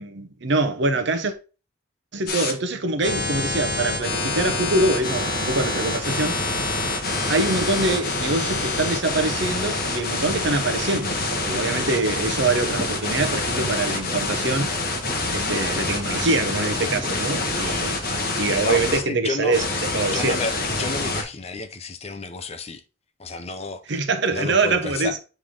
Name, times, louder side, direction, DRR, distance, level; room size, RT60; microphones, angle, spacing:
voice 1, 0.0-1.3 2.1-6.4 7.3-14.7 15.3-18.0 18.4-19.7 19.9-20.4 23.9-25.2, right 3 dB, 60° right, 0.9 m, -24 dB
sound 1, 2.3-2.5 3.0-19.0 19.5-21.2, left 2 dB, 50° left, 1.3 m, -26 dB
sound 2, 9.3-11.6 11.8-19.1, equal, 15° right, 1.3 m, -42 dB
voice 2, 18.6-19.6 20.1-22.8 23.2-24.0 24.3-25.2, left 3 dB, 30° left, 0.6 m, -31 dB
7.5 x 3.4 x 3.7 m
head